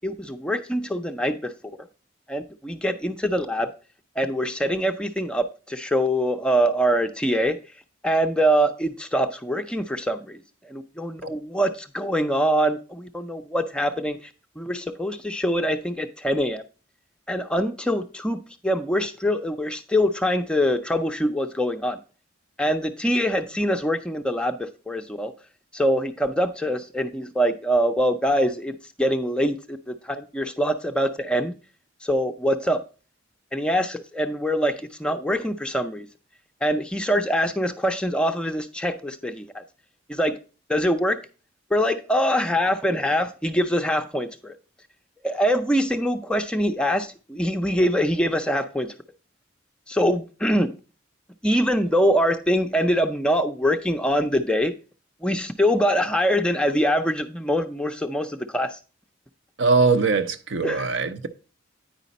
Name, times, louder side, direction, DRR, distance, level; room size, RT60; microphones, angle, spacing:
voice 1, 0.0-1.5 2.3-3.7 4.2-7.6 8.0-14.3 14.6-16.6 17.3-22.0 22.6-25.3 25.7-31.5 32.0-32.8 33.5-36.1 36.6-39.6 40.1-40.4 40.7-41.2 41.7-44.5 45.2-48.9 49.9-50.7 51.4-54.7 55.2-58.8 60.6-60.9, equal, 5° left, 0.4 m, -24 dB
voice 2, 59.6-61.3, right 4 dB, 70° right, 0.6 m, -21 dB
9.0 x 5.0 x 4.0 m
head